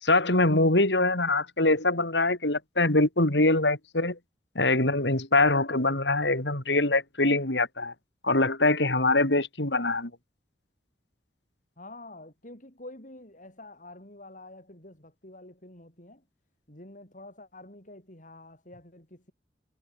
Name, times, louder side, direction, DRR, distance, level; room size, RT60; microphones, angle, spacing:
voice 1, 0.0-4.2 4.5-7.9 8.2-10.1, left 2 dB, 75° left, 4.6 m, -23 dB
voice 2, 11.8-16.2 16.7-19.3, left 2 dB, 45° left, 7.7 m, -48 dB
head